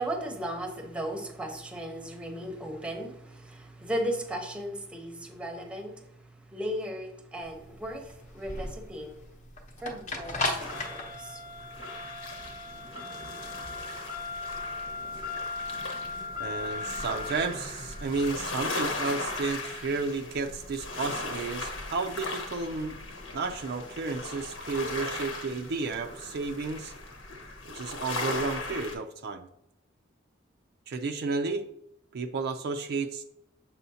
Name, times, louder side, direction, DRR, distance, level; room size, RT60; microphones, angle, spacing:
voice 1, 0.0-9.2 9.8-11.4, right 1 dB, 5° right, 4 dB, 0.8 m, -36 dB
sound 1, 7.4-21.5, left 2 dB, 40° left, 0.8 m, -38 dB
sound 2, 10.2-28.9, left 3 dB, 75° left, 1.1 m, -38 dB
voice 2, 16.4-23.0 23.3-26.9 27.6-29.5 30.9-31.7 32.1-33.2, right 4 dB, 55° right, 5 dB, 0.4 m, -32 dB
6.9 x 5.6 x 2.7 m, 0.78 s
head